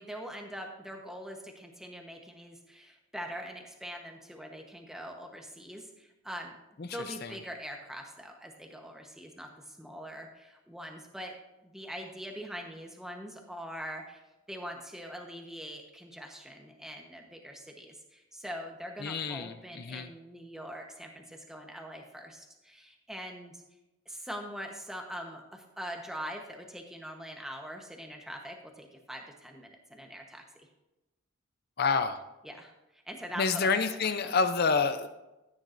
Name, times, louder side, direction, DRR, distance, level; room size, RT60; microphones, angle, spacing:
voice 1, 0.0-6.5 6.9-11.3 11.6-14.2 14.5-23.6 24.1-30.7 32.4-34.4, equal, ahead, 2 dB, 1.0 m, -43 dB
voice 2, 19.0-20.1 31.8-32.2 33.4-35.1, left 4 dB, 45° left, 10 dB, 0.5 m, -28 dB
14.0 x 9.3 x 2.6 m, 0.98 s
head